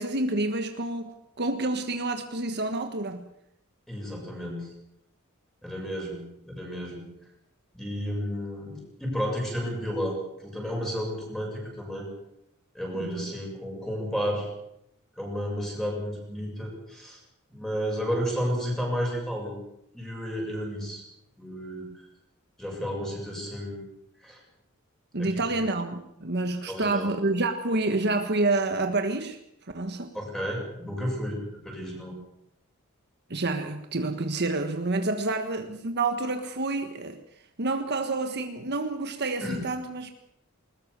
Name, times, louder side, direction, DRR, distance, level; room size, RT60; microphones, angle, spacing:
voice 1, 0.0-3.3 13.0-13.3 25.1-29.4 29.7-30.1 33.3-37.2 37.6-40.1, right 2 dB, 50° right, 6 dB, 1.5 m, -28 dB
voice 2, 3.9-4.7 5.6-7.1 7.7-12.1 12.7-14.5 15.2-17.2 17.5-19.6 19.9-21.0 21.4-22.0 22.6-23.8 24.2-24.4 25.2-25.6 26.7-27.1 30.1-31.4 31.6-32.1 39.4-39.6, equal, ahead, 0 dB, 7.2 m, -32 dB
20.5 x 20.5 x 6.8 m, 0.77 s
head